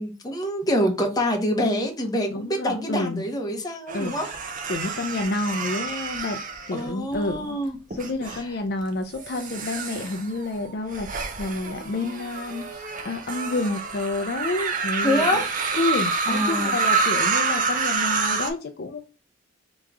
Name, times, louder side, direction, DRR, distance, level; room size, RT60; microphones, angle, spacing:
voice 1, 0.0-4.3 6.7-7.8 8.3-8.5 15.0-15.5 16.3-16.7, equal, 20° left, 0.8 m, -26 dB
voice 2, 2.3-3.2 3.9-4.3 4.7-6.4 6.7-7.6 7.9-15.4 15.7-19.0, left 2 dB, 55° left, 0.5 m, -29 dB
sound 1, 3.9-7.3 7.9-8.4 9.1-18.5, right 4 dB, 45° right, 0.7 m, -28 dB
3.6 x 3.0 x 3.4 m
head